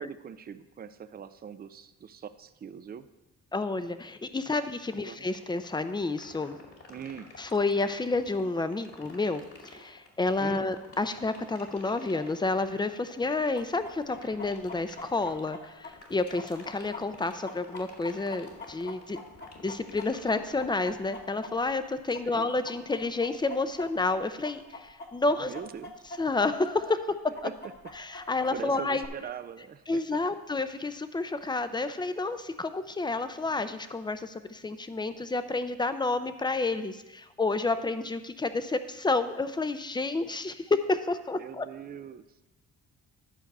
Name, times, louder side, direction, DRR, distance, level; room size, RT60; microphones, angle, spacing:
voice 1, 0.0-3.1 4.9-5.3 6.9-7.3 10.4-10.7 22.1-22.5 25.4-25.9 27.4-27.5 28.2-30.0 41.3-42.4, right 8 dB, 30° right, 12 dB, 0.5 m, -42 dB
voice 2, 3.5-6.6 7.4-19.2 19.6-25.5 26.2-27.1 27.4-27.5 28.0-29.0 29.9-41.6, left 3 dB, 15° left, 11 dB, 0.6 m, -30 dB
sound 1, 5.3-21.2, left 4 dB, 50° left, 2.3 m, -50 dB
Chicken rooster, 13.6-21.9 22.1-26.5 26.8-26.9 27.3-29.1, left 3 dB, 35° left, 1.4 m, -43 dB
11.0 x 4.6 x 6.6 m, 1.0 s
cardioid pair, 90°, 30 cm